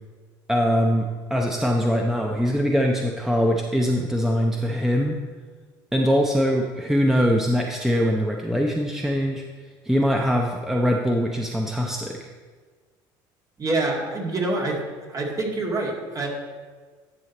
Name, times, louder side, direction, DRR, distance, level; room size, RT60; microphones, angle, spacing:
voice 1, 0.5-5.2 5.9-9.4 9.8-12.2, equal, 5° right, 0 dB, 0.8 m, -22 dB
voice 2, 13.6-14.8 15.1-16.3, right 2 dB, 30° right, 0 dB, 2.1 m, -26 dB
11.0 x 5.8 x 4.2 m, 1.5 s
supercardioid pair, 80°, 11 cm